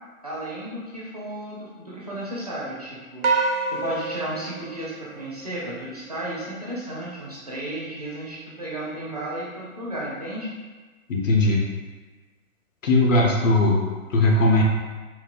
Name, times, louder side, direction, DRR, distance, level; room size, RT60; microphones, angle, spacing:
voice 1, 0.2-3.3 3.7-10.5, right 1 dB, 30° right, -6 dB, 0.4 m, -33 dB
sound 1, 3.2-5.8, right 3 dB, 80° right, 0.6 m, -27 dB
voice 2, 11.1-11.6 12.8-13.8 14.1-14.6, left 2 dB, 60° left, -1 dB, 0.8 m, -19 dB
4.2 x 2.4 x 2.5 m, 1.3 s
figure-of-eight pair, 125°, 43 cm